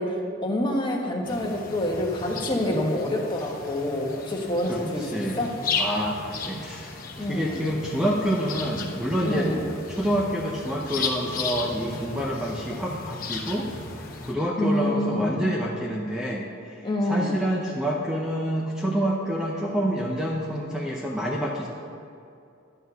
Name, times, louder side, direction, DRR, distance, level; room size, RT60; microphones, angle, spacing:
voice 1, 0.0-5.6 7.2-7.6 9.2-9.6 14.6-15.3 16.8-17.4, left 1 dB, 25° left, -1 dB, 1.1 m, -27 dB
sound 1, 1.2-14.3, left 4 dB, 45° left, 1.0 m, -35 dB
voice 2, 4.7-5.4 5.8-9.5 9.9-13.7 14.2-21.7, equal, 5° right, -3 dB, 0.6 m, -28 dB
11.0 x 4.3 x 6.8 m, 2.5 s
head